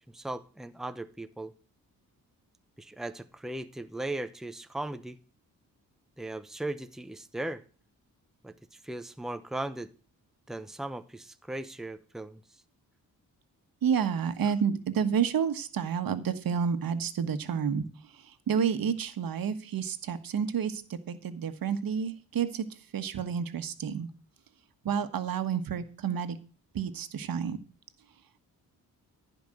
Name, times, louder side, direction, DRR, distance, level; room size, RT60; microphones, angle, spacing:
voice 1, 0.1-1.5 2.8-5.2 6.2-7.6 8.4-9.9 10.5-12.4, right 1 dB, ahead, 10 dB, 0.9 m, -37 dB
voice 2, 13.8-17.9 18.3-22.6 22.9-24.1 24.8-26.4 26.7-27.6, right 7 dB, 70° right, 9 dB, 1.5 m, -30 dB
15.0 x 5.3 x 7.7 m, 0.38 s
cardioid pair, 75°, 36 cm